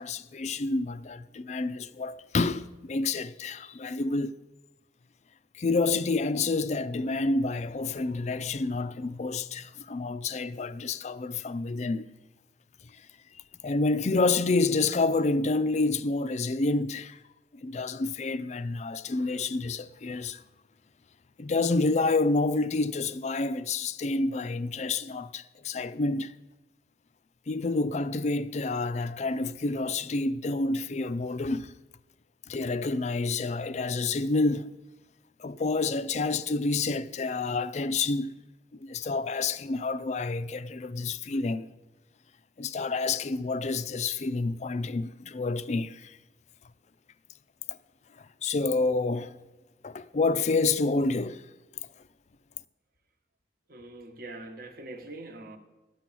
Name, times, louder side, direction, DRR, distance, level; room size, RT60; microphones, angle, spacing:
voice 1, 0.0-4.3 5.5-12.1 13.6-17.2 17.6-20.4 21.4-26.3 27.5-31.7 32.5-34.7 35.4-38.3 38.8-41.7 42.6-46.2 47.7-47.8 48.4-49.4 49.8-51.4, left 3 dB, 40° left, 0.4 m, -28 dB
voice 2, 53.7-55.6, right 2 dB, 55° right, 1.1 m, -43 dB
12.5 x 6.1 x 8.3 m
head